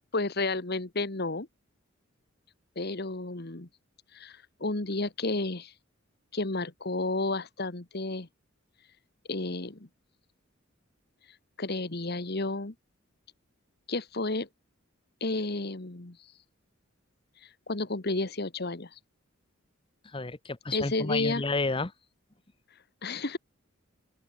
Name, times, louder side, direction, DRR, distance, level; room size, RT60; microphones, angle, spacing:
voice 1, 0.0-1.5 2.7-3.7 4.1-5.7 6.3-8.3 9.3-9.9 11.6-12.7 13.9-14.5 15.2-16.2 17.4-19.0 20.7-21.4 23.0-23.4, left 2 dB, 50° left, 1.6 m, -31 dB
voice 2, 20.0-21.9, left 3 dB, 25° left, 0.9 m, -31 dB
open air
head